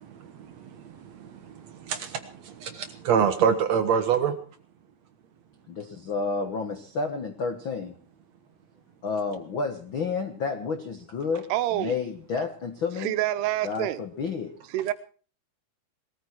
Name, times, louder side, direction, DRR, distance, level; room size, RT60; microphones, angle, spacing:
voice 1, 0.0-4.4, right 7 dB, 65° right, 1.8 m, -27 dB
voice 2, 5.7-7.9 9.0-13.1 13.6-14.5, left 4 dB, 85° left, 1.1 m, -30 dB
voice 3, 11.5-12.0 13.0-14.0 14.7-14.9, right 15 dB, 85° right, 2.9 m, -27 dB
20.5 x 14.0 x 4.5 m
omnidirectional pair, 4.7 m